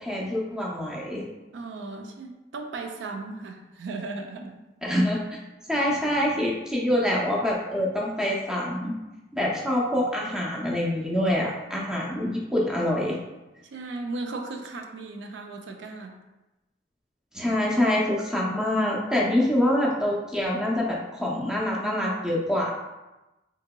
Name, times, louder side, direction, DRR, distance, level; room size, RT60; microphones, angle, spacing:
voice 1, 0.0-1.2 4.8-5.4 5.7-8.9 9.3-13.2 17.3-22.7, left 1 dB, 5° right, -4 dB, 0.4 m, -25 dB
voice 2, 1.5-4.6 13.7-16.2, right 3 dB, 80° right, 4 dB, 0.4 m, -36 dB
3.6 x 2.8 x 2.2 m, 1.0 s
head